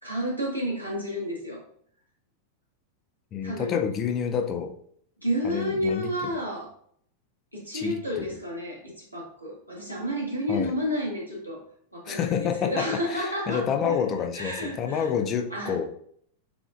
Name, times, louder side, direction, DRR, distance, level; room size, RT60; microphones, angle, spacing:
voice 1, 0.0-1.6 3.4-3.7 5.2-6.7 7.5-11.6 11.9-14.0 14.3-15.1 15.5-15.8, equal, 90° right, -4 dB, 1.2 m, -31 dB
voice 2, 3.3-4.7 5.4-6.1 7.7-8.3 10.5-10.7 12.1-15.8, left 7 dB, 30° left, 5 dB, 0.5 m, -28 dB
6.8 x 2.4 x 2.5 m, 0.62 s
figure-of-eight pair, 90°, 0 cm